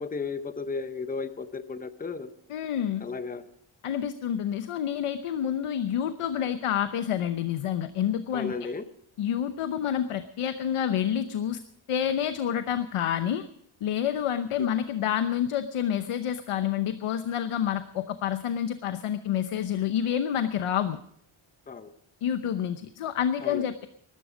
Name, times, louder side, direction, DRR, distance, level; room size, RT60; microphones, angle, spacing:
voice 1, 0.0-2.3 3.0-3.4 8.3-8.8 21.7-21.9 23.4-23.6, left 4 dB, 15° left, 11 dB, 0.7 m, -34 dB
voice 2, 2.5-3.1 3.8-8.5 9.2-11.6 11.9-13.5 13.8-21.0 22.2-23.9, left 9 dB, 85° left, 10 dB, 0.9 m, -28 dB
20.5 x 12.5 x 5.0 m, 0.66 s
wide cardioid pair, 170°, 50 cm